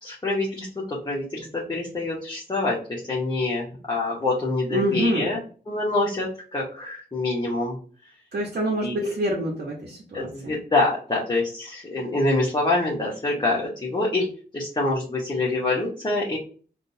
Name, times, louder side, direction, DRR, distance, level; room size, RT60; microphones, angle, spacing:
voice 1, 0.0-5.4 5.7-7.8 8.8-9.1 10.1-14.3 14.5-16.4, left 2 dB, 25° left, -5 dB, 1.0 m, -26 dB
voice 2, 4.7-5.3 8.3-10.5, right 1 dB, 60° right, -2 dB, 0.8 m, -26 dB
3.7 x 2.3 x 2.7 m, 0.40 s
cardioid pair, 60°, 17 cm